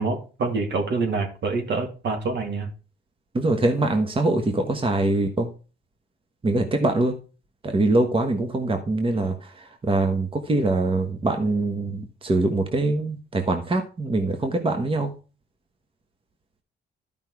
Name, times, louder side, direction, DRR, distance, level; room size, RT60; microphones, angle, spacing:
voice 1, 0.0-2.7, right 3 dB, 60° right, 4 dB, 2.6 m, -26 dB
voice 2, 3.3-5.5 6.4-7.1 7.7-9.3 9.9-15.1, right 2 dB, 25° right, 5 dB, 1.3 m, -23 dB
11.5 x 5.4 x 4.8 m, 0.35 s
cardioid pair, 90°, 20 cm